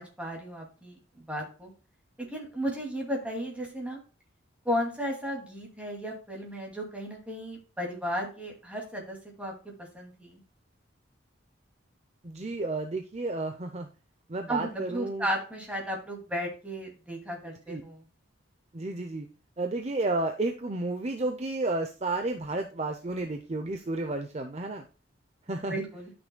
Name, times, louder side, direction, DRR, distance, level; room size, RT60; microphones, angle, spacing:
voice 1, 0.0-1.7 2.2-4.0 4.6-10.4 14.5-18.1 25.7-26.1, equal, 5° right, -1 dB, 2.4 m, -34 dB
voice 2, 12.2-13.9 14.3-15.3 17.7-17.8 18.7-19.3 19.6-24.9 25.5-25.8, right 2 dB, 35° right, 6 dB, 0.6 m, -31 dB
11.5 x 6.1 x 2.2 m, 0.34 s
head